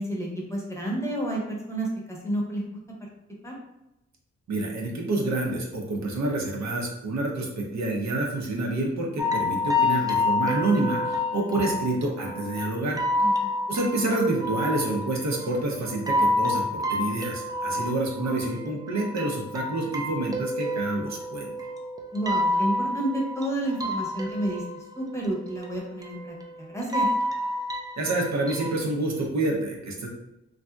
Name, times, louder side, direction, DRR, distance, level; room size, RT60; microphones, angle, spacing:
voice 1, 0.0-2.6 3.4-3.5 13.2-13.6 22.1-24.6 25.0-27.1, right 1 dB, 10° left, -3 dB, 0.8 m, -30 dB
voice 2, 4.5-13.0 13.7-21.5 28.0-30.1, right 2 dB, 70° right, -1 dB, 0.7 m, -28 dB
sound 1, 9.2-28.8, left 2 dB, 15° right, 0.4 m, -29 dB
3.3 x 2.6 x 2.3 m, 0.92 s
cardioid pair, 85°, 29 cm